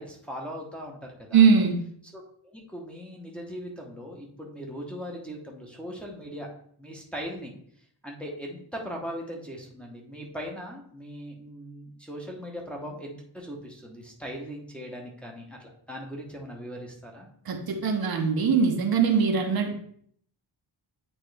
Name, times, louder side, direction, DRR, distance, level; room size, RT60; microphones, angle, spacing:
voice 1, 0.0-1.5 2.1-2.2 2.5-6.5 6.8-7.5 8.0-17.3, equal, 5° left, -2 dB, 1.0 m, -39 dB
voice 2, 1.3-1.8 17.5-19.7, right 6 dB, 55° right, 3 dB, 0.9 m, -21 dB
8.6 x 3.6 x 3.4 m, 0.63 s
wide cardioid pair, 155°, 43 cm